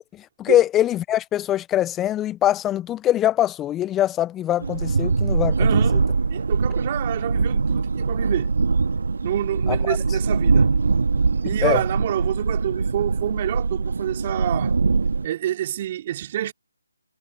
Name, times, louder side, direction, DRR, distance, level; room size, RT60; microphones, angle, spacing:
voice 1, 0.1-5.7 9.7-10.0 11.6-11.8, left 12 dB, 10° left, 0.7 m, -22 dB
sound 1, 4.6-15.3, right 4 dB, 60° right, 2.6 m, -22 dB
voice 2, 5.6-6.0 6.3-8.5 9.2-10.7 11.4-14.7 15.2-16.5, right 12 dB, 30° right, 3.5 m, -27 dB
figure-of-eight pair, 155°, 0 cm